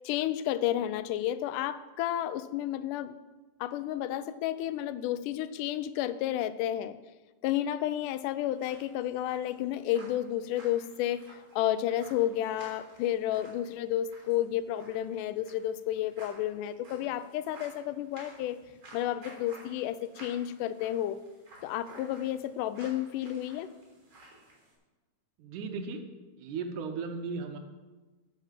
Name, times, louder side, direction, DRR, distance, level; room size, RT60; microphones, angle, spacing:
voice 1, 0.0-3.1 3.6-7.0 7.4-11.2 11.5-18.6 18.9-21.2 21.6-23.7, left 12 dB, 85° left, 14 dB, 2.1 m, -31 dB
sound 1, 8.5-24.7, right 2 dB, 40° right, 4.2 m, -54 dB
voice 2, 25.4-26.0 26.4-27.6, right 4 dB, 75° right, 6 dB, 2.4 m, -36 dB
12.0 x 5.7 x 7.3 m, 1.2 s
omnidirectional pair, 3.6 m